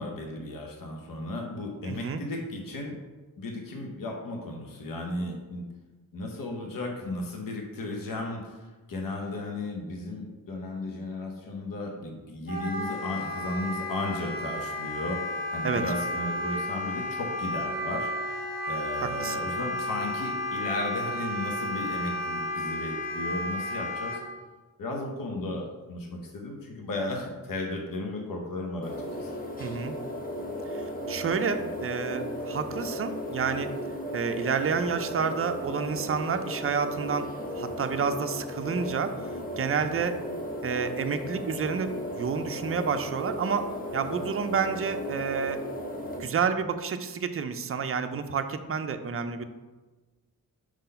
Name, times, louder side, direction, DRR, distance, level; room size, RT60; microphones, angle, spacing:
voice 1, 0.0-2.9 3.4-5.7 6.1-24.2 24.8-29.3, left 2 dB, 70° left, 1 dB, 0.9 m, -35 dB
voice 2, 1.9-2.2 15.6-15.8 19.0-19.4 29.6-29.9 30.7-33.7 34.1-37.3 37.5-39.1 39.6-40.2 40.6-41.9 42.2-45.6 46.2-49.4, right 6 dB, 40° right, 8 dB, 0.4 m, -29 dB
Wind instrument woodwind instrument, 12.5-24.2, left 1 dB, 45° left, 1.7 m, -32 dB
sound 1, 28.8-46.2, equal, 25° left, 0.8 m, -35 dB
4.8 x 3.9 x 5.5 m, 1.2 s
wide cardioid pair, 125°, 35 cm